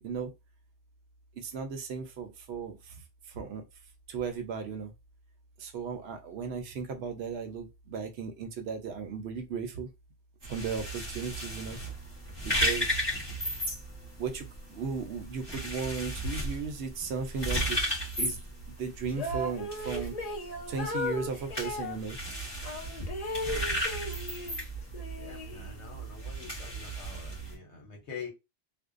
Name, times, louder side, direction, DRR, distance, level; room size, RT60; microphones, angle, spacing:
voice 1, 0.0-0.3 1.4-3.6 4.1-4.9 5.6-9.9 10.4-11.8 12.4-13.0 14.2-17.8 18.2-18.4 18.8-20.1 20.7-22.2, right 5 dB, 70° right, 0.9 m, -36 dB
sound 1, 10.4-27.5, equal, 25° left, 1.0 m, -35 dB
sound 2, 19.1-22.0 22.6-24.6 24.9-26.0, left 1 dB, 45° left, 0.6 m, -36 dB
voice 2, 25.1-28.3, left 6 dB, 85° left, 1.1 m, -45 dB
2.5 x 2.1 x 2.4 m
omnidirectional pair, 1.1 m